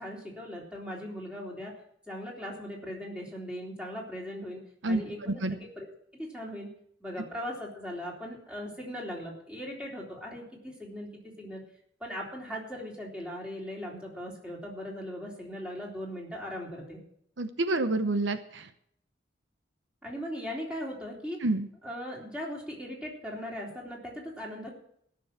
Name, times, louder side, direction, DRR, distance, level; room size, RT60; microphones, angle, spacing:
voice 1, 0.0-1.7 2.1-4.6 4.9-5.9 6.2-6.7 7.0-11.6 12.0-17.0 20.0-21.4 21.8-24.7, equal, 5° right, -3 dB, 3.7 m, -39 dB
voice 2, 4.8-5.6 17.4-18.7 21.4-21.7, right 2 dB, 75° right, 9 dB, 0.9 m, -28 dB
15.5 x 6.9 x 7.3 m, 0.68 s
head